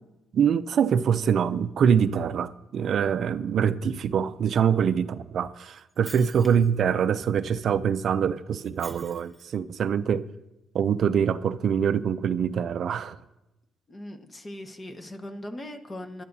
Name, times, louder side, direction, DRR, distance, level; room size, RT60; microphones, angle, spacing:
voice 1, 0.3-10.3 10.7-13.2, right 7 dB, 60° right, 0.4 m, -24 dB
Shatter, 5.8-6.8 8.6-9.5, right 1 dB, 5° right, 1.2 m, -46 dB
voice 2, 13.9-16.2, left 1 dB, 25° left, 1.3 m, -39 dB
24.5 x 12.0 x 2.7 m
cardioid pair, 90°, 0 cm